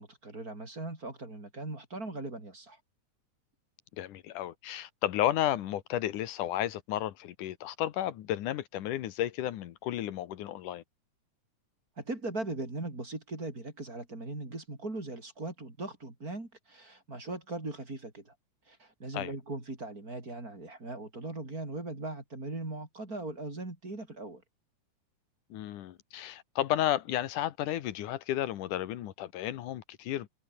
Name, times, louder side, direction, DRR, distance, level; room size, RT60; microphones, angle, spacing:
voice 1, 0.0-2.8 12.0-18.3 18.7-24.4, right 2 dB, 25° right, 5.2 m, -39 dB
voice 2, 4.0-10.8 19.1-19.3 25.5-30.3, left 12 dB, 85° left, 2.8 m, -33 dB
omnidirectional pair, 3.5 m